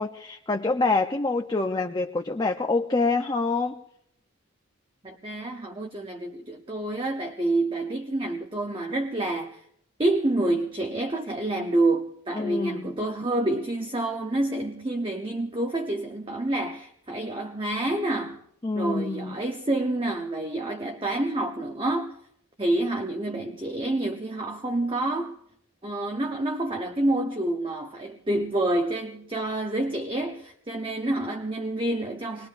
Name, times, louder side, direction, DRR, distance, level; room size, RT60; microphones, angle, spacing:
voice 1, 0.0-3.8 12.3-12.9 18.6-19.4, left 3 dB, 20° left, 0.6 m, -26 dB
voice 2, 5.0-9.6 10.0-18.4 18.7-22.2 22.6-25.3 25.8-32.5, right 2 dB, 25° right, 0.8 m, -28 dB
25.5 x 21.5 x 2.6 m
head